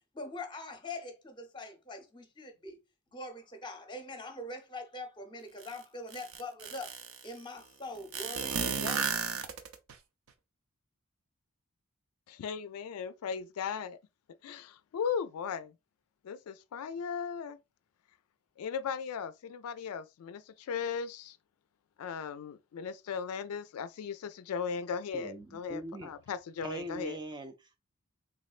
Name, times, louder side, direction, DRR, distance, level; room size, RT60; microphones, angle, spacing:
voice 1, 0.1-2.8 3.1-6.9 7.2-9.2, left 2 dB, 20° left, 0.7 m, -43 dB
sound 1, 5.6-5.7 6.1-7.2 8.1-9.9, right 6 dB, 75° right, 0.5 m, -33 dB
voice 2, 12.3-14.0 14.4-15.7 16.2-17.6 18.6-21.4 22.0-27.2, left 6 dB, 85° left, 0.3 m, -37 dB
voice 3, 25.1-26.1 26.6-27.8, right 2 dB, 20° right, 0.3 m, -42 dB
3.5 x 3.1 x 2.4 m
head